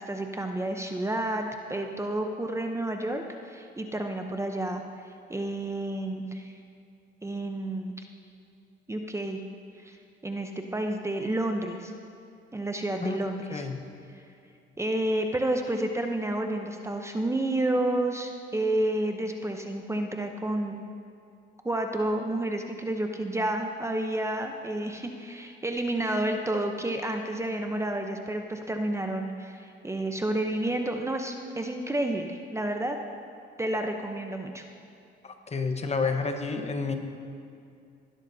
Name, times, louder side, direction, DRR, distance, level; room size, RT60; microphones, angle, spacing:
voice 1, 0.0-1.4 1.7-4.8 5.3-6.5 7.2-8.0 8.9-9.4 9.8-10.0 10.2-11.9 12.5-13.7 14.1-14.2 14.8-20.8 21.6-33.0 33.6-34.6, right 1 dB, 15° right, 4 dB, 0.7 m, -30 dB
voice 2, 35.2-37.0, left 4 dB, 35° left, 5 dB, 1.1 m, -29 dB
16.5 x 12.0 x 2.7 m, 2.5 s
cardioid pair, 90°, 20 cm